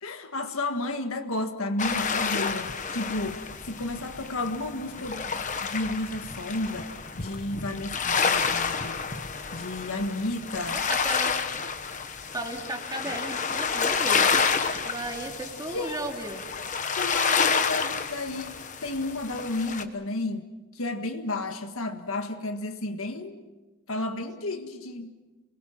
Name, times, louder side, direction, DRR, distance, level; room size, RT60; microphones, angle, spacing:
voice 1, 0.0-6.9 7.2-9.0 9.5-10.8 15.7-16.1 16.9-18.6 18.8-20.5 20.7-23.4 23.9-25.1, left 2 dB, 65° left, 6 dB, 1.7 m, -32 dB
sound 1, 1.8-19.8, left 5 dB, 35° left, 1.2 m, -29 dB
voice 2, 10.7-11.3 12.3-14.5 14.8-16.4, right 1 dB, 15° right, 1 dB, 2.8 m, -35 dB
28.0 x 21.5 x 6.0 m, 1.1 s
head